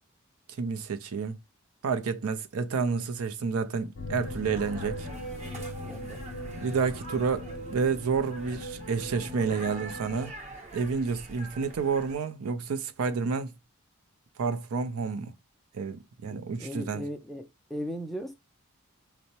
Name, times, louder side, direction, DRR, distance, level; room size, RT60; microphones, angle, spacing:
voice 1, 0.6-1.4 1.8-5.1 6.6-10.3 10.7-13.5 14.4-15.3 15.7-17.0, right 5 dB, 80° right, 0.5 m, -30 dB
sound 1, 3.9-10.3, equal, 60° left, 0.7 m, -39 dB
sound 2, 4.1-12.2, right 1 dB, 30° right, 0.7 m, -45 dB
voice 2, 5.7-6.2 16.3-18.3, equal, ahead, 0.3 m, -38 dB
5.3 x 2.0 x 2.7 m
head